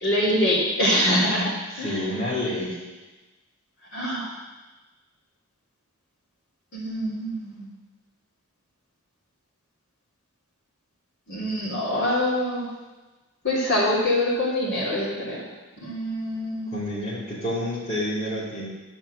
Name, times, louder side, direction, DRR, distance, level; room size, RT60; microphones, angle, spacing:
voice 1, 0.0-1.5 1.8-2.1 3.9-4.3 6.7-7.7 11.3-12.6 13.4-15.4 15.8-16.7, left 1 dB, 55° left, -6 dB, 3.0 m, -24 dB
voice 2, 1.7-2.8 16.7-18.7, left 1 dB, 30° left, -9 dB, 2.5 m, -29 dB
10.5 x 4.5 x 7.6 m, 1.2 s
head